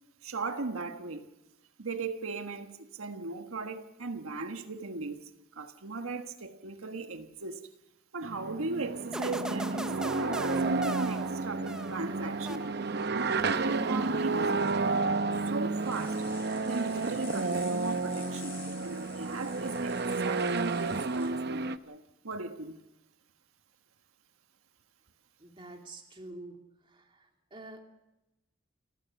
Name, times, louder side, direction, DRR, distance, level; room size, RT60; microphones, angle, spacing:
voice 1, 0.2-1.3 1.8-5.2 5.5-7.6 8.1-12.6 13.1-15.0 15.5-16.2 16.6-18.6 18.8-22.8, right 3 dB, 90° right, 1.4 m, -37 dB
sound 1, 8.2-21.8, right 3 dB, 50° right, 0.8 m, -31 dB
sound 2, 9.1-12.1 12.5-13.1, right 1 dB, 5° right, 0.7 m, -40 dB
sound 3, 15.8-21.3, left 5 dB, 25° left, 6.9 m, -50 dB
voice 2, 25.4-26.6 26.8-27.8, right 2 dB, 25° right, 2.5 m, -47 dB
29.5 x 15.0 x 7.1 m
head